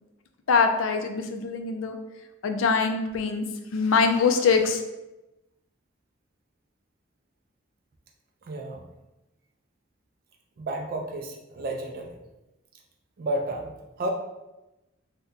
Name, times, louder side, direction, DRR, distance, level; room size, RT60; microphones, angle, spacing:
voice 1, 0.5-2.0 2.4-3.5 3.7-4.8, left 5 dB, 75° left, 6 dB, 0.4 m, -23 dB
voice 2, 8.5-8.8 10.6-12.1 13.2-14.1, right 1 dB, 45° right, 2 dB, 0.3 m, -32 dB
2.6 x 2.2 x 3.6 m, 0.98 s
head